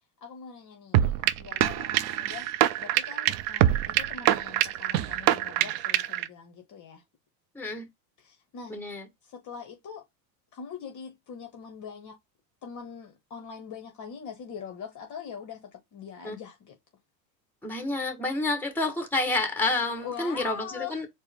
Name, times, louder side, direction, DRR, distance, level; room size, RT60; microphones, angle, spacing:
voice 1, 0.2-2.5 2.8-7.0 8.2-8.8 9.2-10.0 10.5-12.2 12.6-16.8 20.0-21.0, left 7 dB, 35° left, 1.0 m, -42 dB
sound 1, 0.9-6.3, right 12 dB, 45° right, 0.5 m, -25 dB
voice 2, 7.5-7.9 8.7-9.0 16.2-16.4 17.6-21.1, left 2 dB, 5° left, 1.4 m, -29 dB
4.4 x 2.1 x 3.4 m
supercardioid pair, 115°, 49 cm